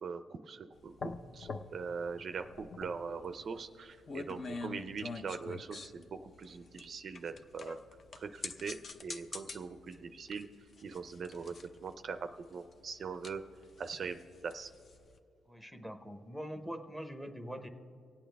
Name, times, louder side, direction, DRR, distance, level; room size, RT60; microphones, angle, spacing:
voice 1, 0.0-7.8 8.2-10.5 10.8-11.5 11.8-13.4 13.8-14.7, right 5 dB, 50° right, 9 dB, 0.5 m, -42 dB
sound 1, 0.8-15.2, left 4 dB, 40° left, 0.7 m, -46 dB
voice 2, 15.5-17.7, equal, 5° left, 7 dB, 0.9 m, -43 dB
25.0 x 8.5 x 3.4 m, 2.5 s
cardioid pair, 115°, 0 cm